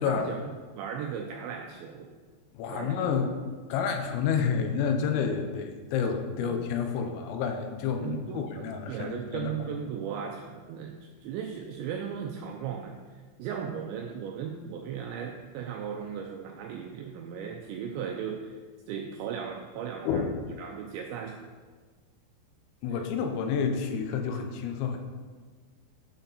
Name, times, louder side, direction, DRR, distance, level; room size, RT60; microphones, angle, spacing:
voice 1, 0.0-2.1 2.7-3.0 6.4-6.6 8.0-13.0 13.4-18.6 18.9-20.3 20.6-21.4 22.9-23.0, right 7 dB, 90° right, 3 dB, 2.5 m, -37 dB
voice 2, 2.6-3.3 3.7-9.5 20.1-20.3 22.8-25.0, left 6 dB, 85° left, 5 dB, 3.6 m, -29 dB
10.5 x 8.1 x 4.1 m, 1.5 s
omnidirectional pair, 5.8 m